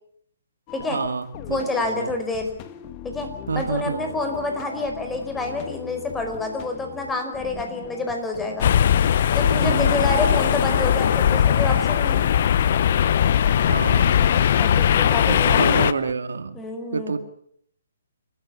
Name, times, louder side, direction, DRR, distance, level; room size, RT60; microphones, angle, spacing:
sound 1, 0.7-16.1, left 10 dB, 30° left, 1.8 m, -39 dB
voice 1, 0.9-1.6 2.0-2.1 3.5-4.1 9.5-10.0 13.7-14.2 15.3-16.6 16.9-17.2, right 5 dB, 75° right, 10 dB, 2.1 m, -27 dB
voice 2, 1.5-2.5 3.0-3.3 3.5-8.7 9.3-12.2 14.6-15.6 16.5-17.2, left 2 dB, 10° left, 4 dB, 4.9 m, -28 dB
sound 2, 8.6-15.9, left 9 dB, 50° left, 0.9 m, -19 dB
30.0 x 14.0 x 8.5 m, 0.67 s
hypercardioid pair, 140°, 0 cm